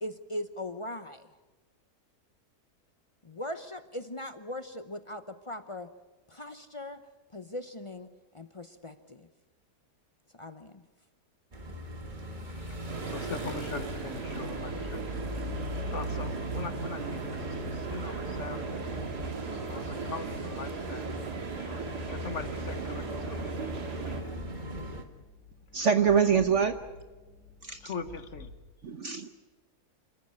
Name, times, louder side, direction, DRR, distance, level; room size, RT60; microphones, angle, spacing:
voice 1, 0.0-1.3 3.2-5.9 6.3-7.0 7.3-8.1 8.3-9.3 10.3-10.8, left 1 dB, 35° left, 9 dB, 0.5 m, -39 dB
sound 1, 11.5-25.0, right 1 dB, 30° right, 1.7 m, -39 dB
voice 2, 12.5-15.3 15.9-18.6 19.7-21.1 21.7-23.7 24.0-24.3 27.8-28.5, left 4 dB, 50° left, 9 dB, 1.5 m, -41 dB
sound 2, 12.9-24.2, right 4 dB, 75° right, 2.7 m, -38 dB
sound 3, 25.2-28.5, left 3 dB, ahead, 5.6 m, -51 dB
voice 3, 25.7-26.7 27.7-27.8 28.8-29.3, right 7 dB, 55° right, 8 dB, 1.1 m, -24 dB
27.5 x 14.5 x 8.3 m, 1.3 s
omnidirectional pair, 1.7 m